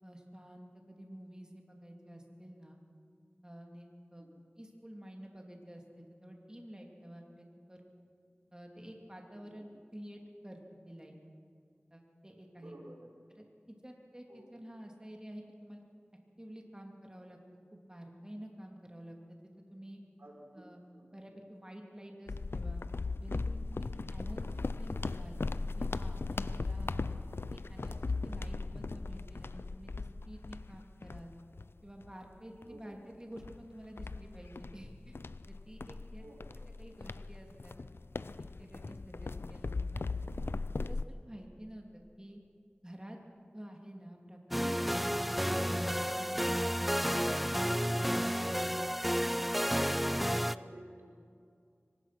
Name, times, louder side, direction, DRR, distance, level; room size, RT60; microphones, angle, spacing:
voice 1, 0.0-2.8 3.4-4.3 4.6-7.9 8.5-10.6 10.9-11.2 11.9-12.8 13.3-15.8 16.4-17.4 17.7-19.4 19.7-20.0 20.6-20.8 21.1-22.8 23.2-24.5 24.8-25.4 25.8-27.2 27.5-31.4 31.8-35.2 35.5-36.2 36.8-37.7 38.4-40.3 40.8-42.4 42.8-43.2 43.5-44.6 45.3-47.4, equal, 20° right, 1 dB, 2.9 m, -50 dB
voice 2, 12.6-13.0 14.3-14.5 20.2-21.1 24.2-24.4 32.7-32.8 36.2-36.6 50.2-51.1, right 1 dB, 85° right, -1 dB, 4.8 m, -53 dB
sound 1, 22.3-32.1 32.6-32.8 33.4-41.0, left 3 dB, 85° left, 0.5 m, -38 dB
sound 2, 44.5-50.6, equal, ahead, 0.5 m, -31 dB
23.5 x 19.5 x 6.1 m, 2.4 s
wide cardioid pair, 50°, 4 cm